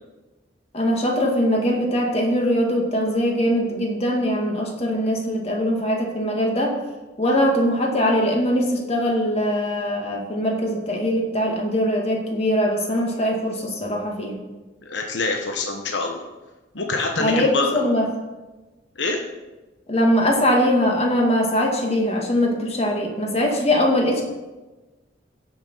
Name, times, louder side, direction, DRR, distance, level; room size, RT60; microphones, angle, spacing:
voice 1, 0.7-6.8 7.2-14.4 17.2-18.1 19.9-24.2, equal, 35° left, 1 dB, 2.1 m, -21 dB
voice 2, 14.8-16.3 16.7-17.8 19.0-19.2, left 3 dB, 85° left, 2 dB, 1.1 m, -25 dB
15.5 x 6.1 x 5.6 m, 1.2 s
head